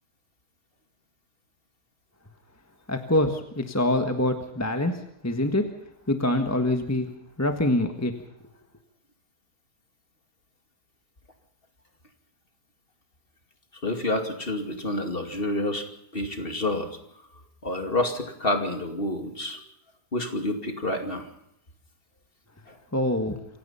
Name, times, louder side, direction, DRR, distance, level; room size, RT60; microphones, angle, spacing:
voice 1, 2.9-5.6 6.1-7.1 7.4-8.1 22.9-23.3, left 1 dB, 10° left, 6 dB, 1.4 m, -25 dB
voice 2, 13.8-15.9 16.1-16.9 17.6-19.6 20.1-21.3 22.7-22.8, left 1 dB, 35° left, 5 dB, 2.6 m, -28 dB
27.5 x 16.5 x 5.7 m, 0.76 s
omnidirectional pair, 1.7 m